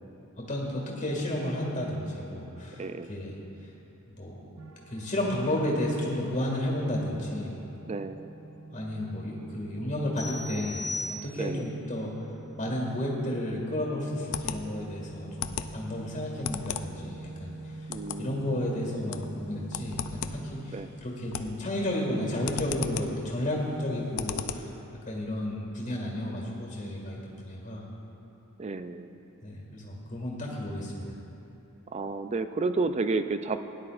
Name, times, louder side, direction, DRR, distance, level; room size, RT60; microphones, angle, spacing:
voice 1, 0.4-3.3 4.1-4.4 4.9-7.5 8.7-12.1 12.6-17.9 18.2-24.7 25.1-27.8 29.4-31.1, left 1 dB, 35° left, -2 dB, 2.0 m, -32 dB
voice 2, 2.8-3.1 7.9-8.3 11.4-11.7 17.9-18.6 20.7-20.9 28.6-29.1 31.9-33.6, right 3 dB, 30° right, 10 dB, 0.3 m, -31 dB
sound 1, 4.6-20.6, right 2 dB, 85° right, 0.5 m, -45 dB
sound 2, 10.2-11.7, left 2 dB, ahead, 1.2 m, -37 dB
sound 3, 14.1-24.8, left 8 dB, 85° left, 0.5 m, -39 dB
16.5 x 10.5 x 2.5 m, 2.9 s
head